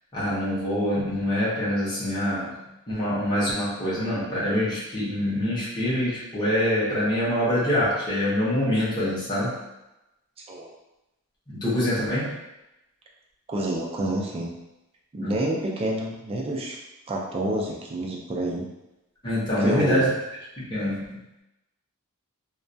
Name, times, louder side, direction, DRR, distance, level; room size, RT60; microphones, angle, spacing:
voice 1, 0.1-2.5 2.9-9.6 11.5-12.4 15.2-15.4 19.2-20.1 20.6-21.4, equal, 20° left, -9 dB, 0.7 m, -25 dB
voice 2, 13.5-14.5 15.1-16.8 17.1-18.7 19.6-20.1, right 1 dB, 25° right, -1 dB, 0.3 m, -28 dB
2.2 x 2.2 x 2.6 m, 0.94 s
head